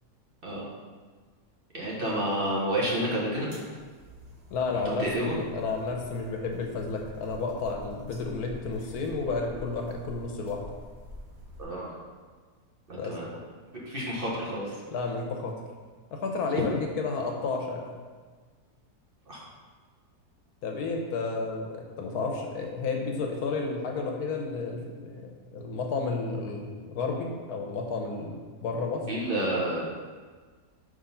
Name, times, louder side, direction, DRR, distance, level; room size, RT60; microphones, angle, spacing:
voice 1, 1.7-3.5 5.0-5.3 11.6-11.9 12.9-13.3 13.7-14.8 16.6-16.7 19.3-19.4 29.1-29.8, right 1 dB, 40° right, -5 dB, 1.2 m, -30 dB
sound 1, 3.5-11.6, right 1 dB, 70° right, 2.4 m, -47 dB
voice 2, 4.5-10.6 12.9-13.2 14.9-15.5 16.1-17.8 20.6-29.0, left 4 dB, 75° left, 2 dB, 1.2 m, -31 dB
5.3 x 3.8 x 5.5 m, 1.5 s
omnidirectional pair, 1.7 m